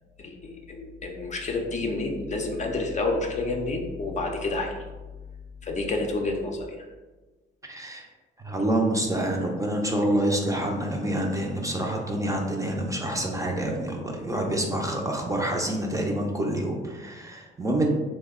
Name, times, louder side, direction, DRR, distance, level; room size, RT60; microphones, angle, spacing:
voice 1, 0.2-4.9 5.6-6.9, left 2 dB, 35° left, 2 dB, 0.5 m, -29 dB
voice 2, 7.7-8.1 8.4-17.9, right 1 dB, 15° right, 0 dB, 0.5 m, -27 dB
3.2 x 2.1 x 3.5 m, 1.2 s
cardioid pair, 90°, 20 cm